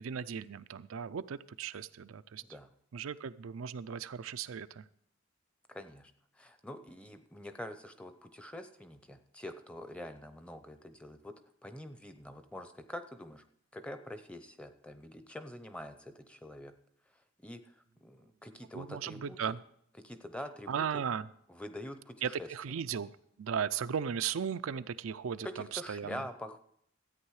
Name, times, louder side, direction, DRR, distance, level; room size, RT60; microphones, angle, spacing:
voice 1, 0.0-2.4 2.9-4.9 18.7-19.6 20.7-21.3 22.2-23.1 23.4-26.2, right 7 dB, 85° right, 12 dB, 0.4 m, -36 dB
voice 2, 5.7-11.3 11.6-13.4 13.7-16.7 17.4-17.6 18.0-19.4 20.0-21.0 21.6-22.5 25.4-26.6, left 1 dB, 5° left, 9 dB, 0.6 m, -45 dB
13.5 x 8.9 x 4.8 m, 0.70 s
head